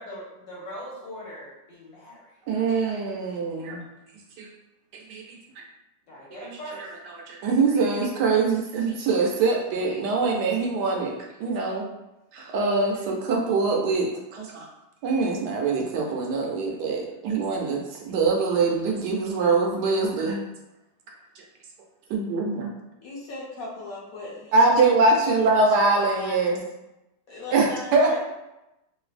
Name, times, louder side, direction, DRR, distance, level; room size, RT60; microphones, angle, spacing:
voice 1, 0.0-2.4 6.1-6.9, equal, 85° left, -6 dB, 1.8 m, -40 dB
voice 2, 2.5-3.8 4.4-4.5 5.1-5.4 7.3-11.9 12.3-14.7 15.0-20.4 22.1-22.7 24.5-26.6 27.5-27.7 27.9-28.1, right 3 dB, 75° right, 0 dB, 1.1 m, -23 dB
voice 3, 23.0-26.6 27.3-28.2, left 2 dB, 60° left, -5 dB, 1.1 m, -39 dB
3.9 x 2.5 x 2.4 m, 0.95 s
omnidirectional pair, 2.0 m